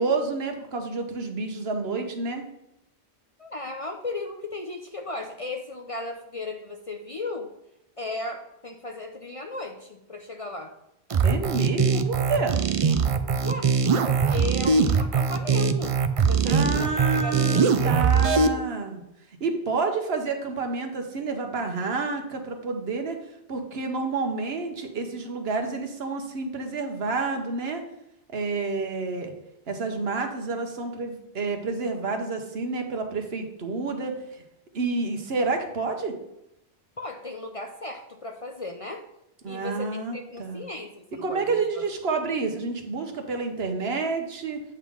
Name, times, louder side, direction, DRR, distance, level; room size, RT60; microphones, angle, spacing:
voice 1, 0.0-2.4 11.2-12.6 16.4-19.0 19.4-23.2 23.5-27.8 28.3-29.3 29.7-34.4 34.7-36.1 39.4-40.6 41.2-44.6, right 4 dB, 70° right, 4 dB, 1.2 m, -29 dB
voice 2, 3.4-7.5 8.0-10.7 13.4-13.7 14.0-16.0 16.2-18.6 37.0-39.1 39.5-41.8, left 2 dB, 40° left, 4 dB, 0.6 m, -36 dB
sound 1, 11.1-18.5, right 5 dB, 50° right, 0.4 m, -22 dB
8.2 x 3.7 x 6.0 m, 0.85 s
omnidirectional pair, 1.1 m